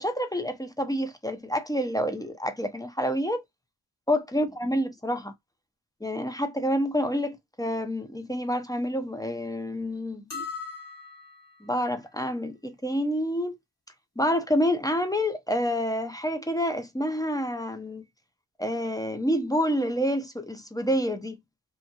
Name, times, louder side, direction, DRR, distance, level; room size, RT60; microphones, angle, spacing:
voice 1, 0.0-3.4 4.1-5.3 6.0-10.3 11.6-13.6 14.2-18.0 18.6-21.4, equal, 10° left, 0.4 m, -28 dB
sound 1, 10.3-11.6, left 5 dB, 35° left, 1.6 m, -38 dB
2.7 x 2.3 x 2.7 m
wide cardioid pair, 85°, 42 cm